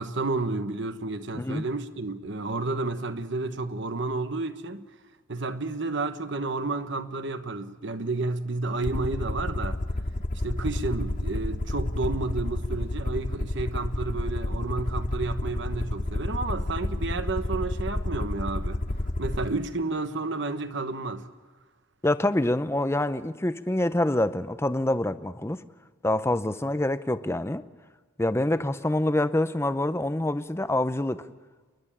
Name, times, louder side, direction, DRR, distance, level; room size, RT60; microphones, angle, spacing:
voice 1, 0.0-4.8 5.3-9.8 10.4-18.8 19.2-21.3, right 3 dB, 60° right, 1.1 m, -31 dB
Aircraft, 8.8-19.5, left 1 dB, 40° left, 0.8 m, -30 dB
voice 2, 22.0-25.6 26.0-27.7 28.2-31.3, left 1 dB, 10° left, 0.6 m, -26 dB
29.0 x 11.5 x 10.0 m
head